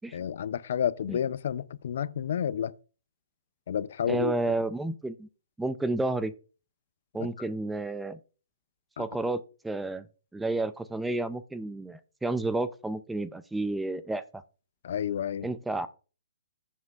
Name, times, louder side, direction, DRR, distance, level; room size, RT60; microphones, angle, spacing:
voice 1, 0.1-2.7 3.7-4.3 7.2-7.3 9.0-9.1 14.8-15.5, left 9 dB, 55° left, 0.4 m, -30 dB
voice 2, 4.1-5.3 5.6-6.3 7.1-8.2 9.0-10.1 10.3-14.2 15.4-15.9, right 2 dB, 5° right, 0.3 m, -31 dB
14.0 x 7.4 x 2.4 m
hypercardioid pair, 155°, 0 cm